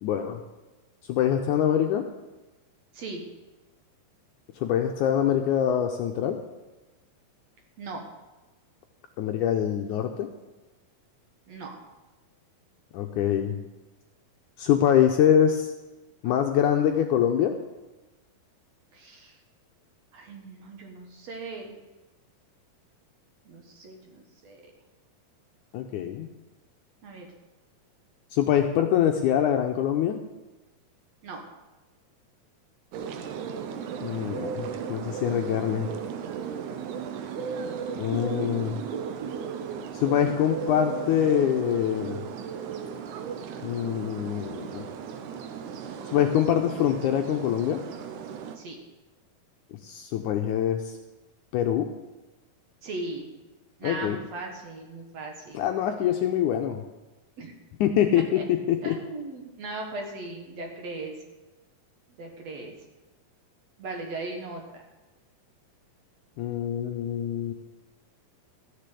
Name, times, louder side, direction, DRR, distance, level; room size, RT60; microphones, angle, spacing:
voice 1, 0.0-0.4 1.1-2.1 4.6-6.4 9.2-10.3 12.9-13.5 14.6-15.7 16.2-17.6 25.7-26.3 28.3-30.2 34.0-35.9 38.0-38.8 39.9-42.2 43.6-44.9 46.1-47.8 49.7-51.0 51.5-51.9 53.8-54.2 55.5-56.8 57.8-58.9 66.4-67.5, left 9 dB, 75° left, 4 dB, 1.9 m, -24 dB
voice 2, 11.5-11.8 18.9-19.4 20.1-21.8 23.5-24.7 27.0-27.3 31.2-31.4 38.1-39.5 48.6-48.8 52.8-53.3 53.8-55.6 57.4-57.5 58.3-58.4 58.8-61.2 62.2-62.7 63.8-64.8, right 2 dB, 55° right, 2 dB, 2.4 m, -38 dB
sound 1, 32.9-48.6, right 7 dB, 70° right, 2.1 m, -36 dB
14.0 x 6.8 x 8.3 m, 1.1 s
omnidirectional pair, 4.2 m